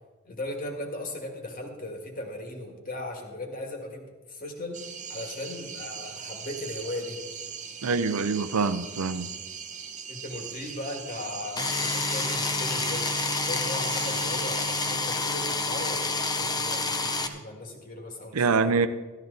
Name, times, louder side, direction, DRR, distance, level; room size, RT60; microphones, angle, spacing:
voice 1, 0.2-7.2 10.1-13.1 13.4-18.9, left 1 dB, 40° left, 2 dB, 1.9 m, -37 dB
sound 1, 4.7-15.0, right 7 dB, 35° right, 0.9 m, -40 dB
voice 2, 7.8-9.3 18.3-18.9, right 4 dB, 90° right, 10 dB, 0.5 m, -25 dB
sound 2, 11.6-17.3, left 3 dB, 20° left, 0.7 m, -28 dB
13.5 x 12.5 x 4.0 m, 1.3 s
head